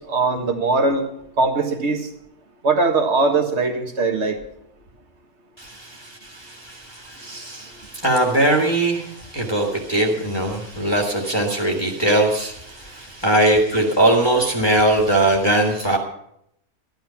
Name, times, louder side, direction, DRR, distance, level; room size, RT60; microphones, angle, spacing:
voice 1, 0.1-1.1 1.4-2.0 2.6-4.4, right 3 dB, 45° right, 5 dB, 1.8 m, -20 dB
voice 2, 5.6-16.0, right 1 dB, 15° left, -2 dB, 1.8 m, -21 dB
14.5 x 11.5 x 5.8 m, 0.76 s
omnidirectional pair, 1.6 m